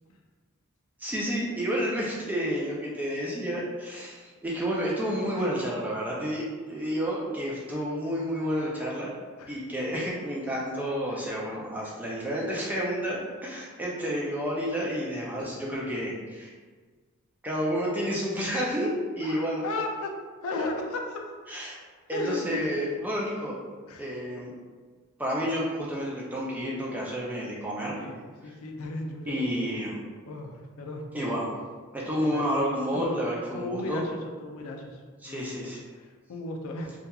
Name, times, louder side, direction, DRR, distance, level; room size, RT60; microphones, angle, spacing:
voice 1, 1.0-9.1 9.5-16.5 17.4-19.6 20.5-20.6 21.5-21.8 22.1-23.5 24.0-24.5 25.2-27.9 29.3-30.0 31.1-31.5 31.9-34.0 35.2-35.8, equal, 10° right, -5 dB, 0.3 m, -30 dB
voice 2, 19.2-20.1 20.4-21.2 22.1-22.7 23.9-24.0 28.0-28.2 28.4-29.4 30.3-31.0 32.3-32.5 32.9-33.3 33.5-35.0 35.3-35.5 36.0-36.9, left 2 dB, 70° left, 2 dB, 0.4 m, -35 dB
2.8 x 2.3 x 2.3 m, 1.5 s
head